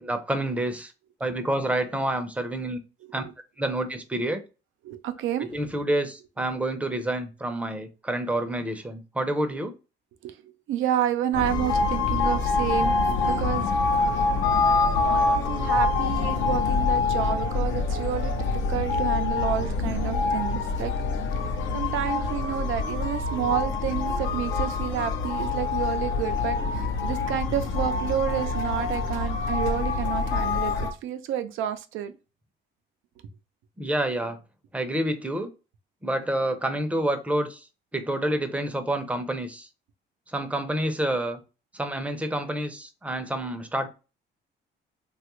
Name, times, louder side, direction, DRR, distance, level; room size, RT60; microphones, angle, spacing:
voice 1, 0.0-0.9 1.2-2.8 3.1-3.2 3.6-4.4 5.5-9.7 33.8-34.4 34.7-35.5 36.0-37.6 37.9-39.7 40.3-41.4 41.7-43.9, right 1 dB, 5° right, 0.6 m, -28 dB
voice 2, 4.8-5.5 10.2-10.4 10.7-13.0 13.3-13.6 14.7-18.4 18.7-20.9 21.7-32.1, right 10 dB, 85° right, 0.5 m, -30 dB
sound 1, 11.3-30.9, left 3 dB, 75° left, 0.6 m, -25 dB
3.2 x 2.3 x 3.0 m
cardioid pair, 90°, 20 cm